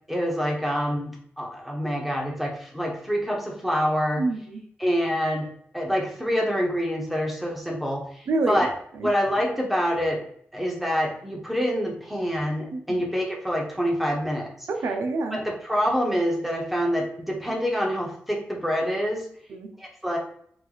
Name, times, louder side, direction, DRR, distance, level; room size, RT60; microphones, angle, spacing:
voice 1, 0.1-4.2 4.8-5.5 5.7-8.7 9.0-10.2 10.5-14.7 15.3-19.3 19.8-20.2, equal, 5° right, -1 dB, 1.2 m, -26 dB
voice 2, 4.2-4.6 8.3-8.7 9.0-9.1 12.7-13.1 14.7-15.4 19.5-19.7, right 3 dB, 85° right, 4 dB, 0.7 m, -27 dB
4.8 x 2.5 x 3.9 m, 0.64 s
wide cardioid pair, 110°, 4 cm